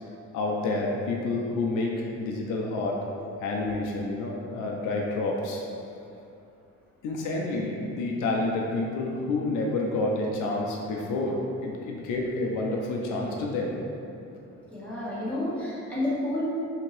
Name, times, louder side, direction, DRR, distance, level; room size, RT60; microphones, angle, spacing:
voice 1, 0.3-3.0 3.4-5.6 7.0-13.8, left 2 dB, 85° left, -1 dB, 0.5 m, -29 dB
voice 2, 14.7-16.4, left 1 dB, 5° left, -10 dB, 1.1 m, -30 dB
2.8 x 2.6 x 3.1 m, 2.6 s
cardioid pair, 90°, 30 cm